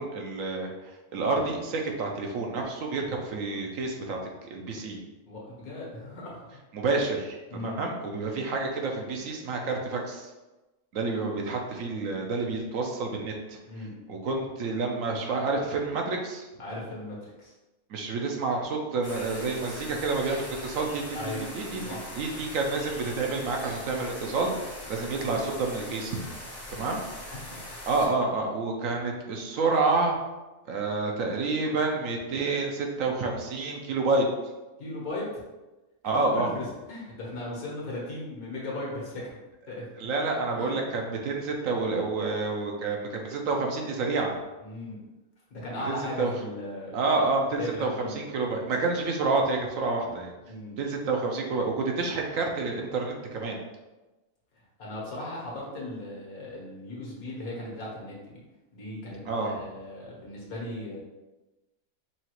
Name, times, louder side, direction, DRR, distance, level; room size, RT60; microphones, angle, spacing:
voice 1, 0.0-5.0 6.7-10.3 10.9-13.6 14.1-16.5 17.9-21.2 21.5-26.2 26.7-27.0 27.9-30.2 30.7-34.3 36.0-36.5 40.0-44.3 45.8-46.3 46.9-47.9 48.1-50.3 50.8-53.6 59.3-59.6, right 3 dB, 70° right, 1 dB, 1.0 m, -29 dB
voice 2, 5.3-6.4 7.5-7.8 11.4-11.6 13.7-13.9 16.6-17.5 21.1-21.4 21.8-22.1 26.7-26.9 27.3-27.6 34.8-35.3 36.1-39.4 39.7-39.9 40.5-40.9 43.4-43.6 44.6-45.0 45.5-47.0 47.4-48.2 50.5-50.8 54.8-58.4 58.7-61.0, left 1 dB, 80° left, -4 dB, 1.7 m, -37 dB
sound 1, 19.0-28.1, left 1 dB, 15° left, 0.6 m, -41 dB
5.8 x 2.4 x 3.0 m, 1.1 s
omnidirectional pair, 1.5 m